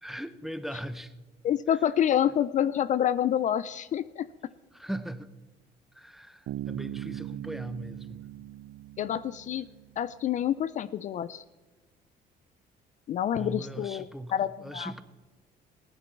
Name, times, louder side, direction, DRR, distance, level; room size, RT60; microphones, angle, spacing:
voice 1, 0.0-1.1 4.7-5.3 5.9-8.3 13.3-14.3 14.6-15.0, right 1 dB, ahead, 0.7 m, -39 dB
voice 2, 1.4-4.3 9.0-9.7 10.0-11.4 13.1-14.9, left 10 dB, 45° left, 0.4 m, -28 dB
Bass guitar, 6.5-10.1, right 15 dB, 75° right, 0.4 m, -40 dB
15.5 x 10.5 x 4.5 m
cardioid pair, 110°, 17 cm